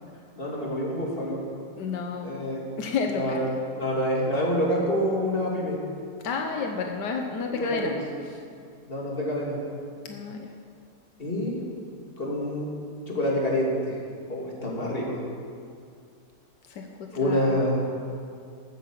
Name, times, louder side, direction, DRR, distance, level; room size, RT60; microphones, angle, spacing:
voice 1, 0.4-1.4 2.2-2.6 3.1-5.8 7.5-8.0 8.9-9.6 11.2-11.6 12.2-12.7 13.1-14.0 14.3-15.2 17.1-17.8, equal, 30° left, -3 dB, 2.9 m, -27 dB
voice 2, 1.8-2.4 2.8-3.4 6.2-7.9 8.3-8.4 10.0-10.5 16.7-17.5, left 5 dB, 80° left, 3 dB, 1.6 m, -31 dB
13.0 x 9.7 x 7.5 m, 2.3 s
omnidirectional pair, 1.8 m